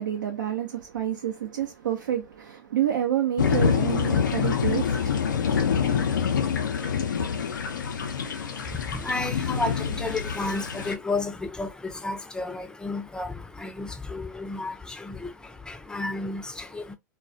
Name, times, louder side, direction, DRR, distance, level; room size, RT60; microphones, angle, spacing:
voice 1, 0.0-5.7, right 10 dB, 80° right, 0.6 m, -29 dB
sound 1, 3.4-11.0, left 7 dB, 85° left, 0.5 m, -26 dB
voice 2, 8.0-17.0, left 3 dB, 10° left, 0.5 m, -32 dB
2.3 x 2.2 x 2.5 m
hypercardioid pair, 100°, 10 cm